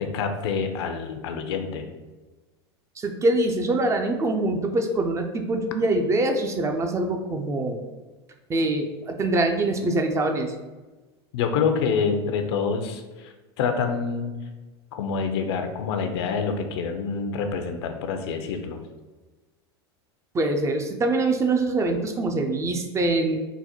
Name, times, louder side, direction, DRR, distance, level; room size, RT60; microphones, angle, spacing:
voice 1, 0.0-1.9 11.3-14.3 14.9-18.8, left 5 dB, 70° left, 6 dB, 0.6 m, -27 dB
voice 2, 3.0-7.8 8.5-10.5 20.3-23.4, right 2 dB, 20° right, 5 dB, 0.4 m, -24 dB
3.9 x 2.1 x 4.3 m, 1.2 s
hypercardioid pair, 110°, 14 cm